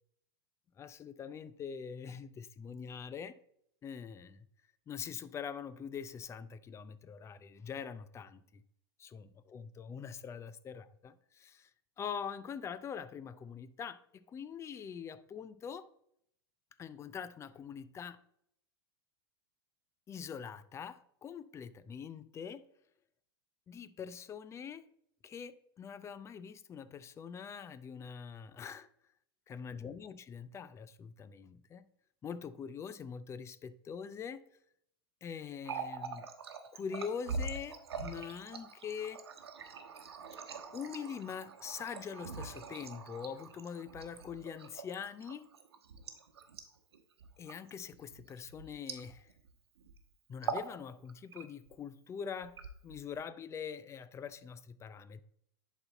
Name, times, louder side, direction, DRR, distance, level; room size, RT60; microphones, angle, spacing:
voice 1, 0.8-3.3 3.8-4.5 4.9-8.6 9.0-11.7 12.0-15.9 16.8-18.2 20.1-22.6 23.7-24.9 25.2-28.9 29.5-31.9 32.2-34.4 35.2-36.3 36.7-39.2 40.7-45.5 47.4-49.3 50.3-52.6 52.8-55.2, left 7 dB, 20° left, 0.4 m, -44 dB
Water tap faucet, 35.5-49.5 49.8-50.0 50.3-50.8 51.1-51.7 52.4-53.2, right 4 dB, 80° right, 1.0 m, -43 dB
10.5 x 4.2 x 4.0 m
hypercardioid pair, 105°, 13 cm